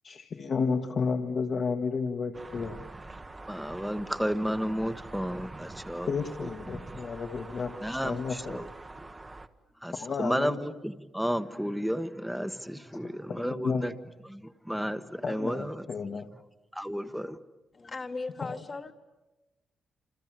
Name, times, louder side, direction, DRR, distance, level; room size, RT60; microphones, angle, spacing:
voice 1, 0.0-2.8 6.1-7.7 8.0-8.6 9.9-10.6 12.9-13.0 13.3-13.8 15.2-16.3 18.4-18.6, left 5 dB, 45° left, 1.6 m, -32 dB
sound 1, 2.3-9.5, right 2 dB, 20° right, 1.2 m, -45 dB
voice 2, 3.5-6.1 6.4-6.8 7.8-8.7 9.0-9.1 9.8-13.9 14.2-15.9 16.7-17.4, equal, ahead, 1.2 m, -32 dB
voice 3, 17.7-18.9, left 3 dB, 30° left, 1.5 m, -37 dB
28.0 x 28.0 x 7.5 m
cardioid pair, 130°, 0 cm